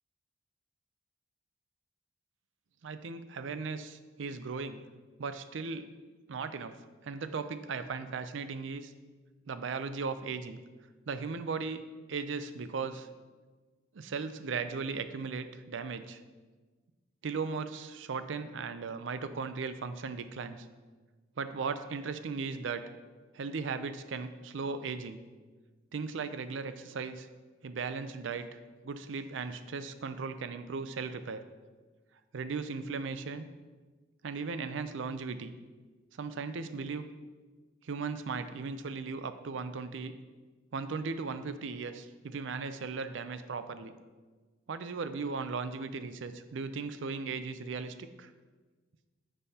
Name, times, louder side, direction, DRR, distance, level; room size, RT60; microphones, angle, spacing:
voice 1, 2.8-4.8 5.2-5.9 6.3-6.7 7.0-8.9 9.5-10.6 11.1-11.8 12.1-13.1 13.9-16.2 17.2-20.7 21.4-22.8 23.3-25.2 25.9-27.3 27.6-28.5 28.8-31.4 32.3-33.5 34.2-35.5 36.2-37.1 37.8-40.1 40.7-43.9 44.7-48.3, right 4 dB, 65° right, 11 dB, 0.4 m, -37 dB
9.5 x 5.5 x 2.8 m, 1.3 s
head